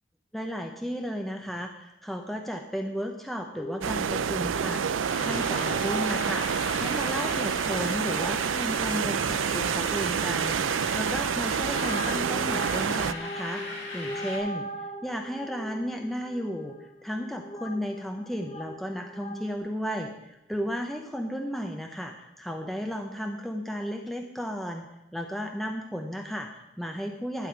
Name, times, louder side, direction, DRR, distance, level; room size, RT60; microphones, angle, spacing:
voice 1, 0.3-10.6 10.9-13.6 13.9-14.7 15.0-16.8 17.0-27.5, equal, ahead, 3 dB, 0.7 m, -34 dB
sound 1, 3.6-19.6, left 1 dB, 25° left, 1.0 m, -42 dB
sound 2, 3.8-13.1, right 7 dB, 85° right, 0.5 m, -28 dB
sound 3, 5.0-14.4, left 2 dB, 65° left, 5.4 m, -39 dB
11.5 x 5.6 x 8.8 m, 0.89 s
head